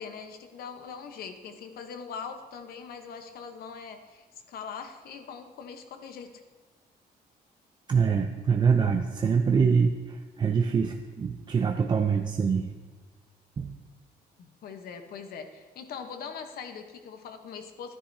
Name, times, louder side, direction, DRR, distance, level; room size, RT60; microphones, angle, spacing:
voice 1, 0.0-6.3 14.4-18.0, left 6 dB, 70° left, 7 dB, 0.9 m, -41 dB
voice 2, 7.9-12.7 13.6-13.8, right 6 dB, 30° right, 3 dB, 0.5 m, -25 dB
13.0 x 9.9 x 2.7 m, 1.3 s
cardioid pair, 145°, 16 cm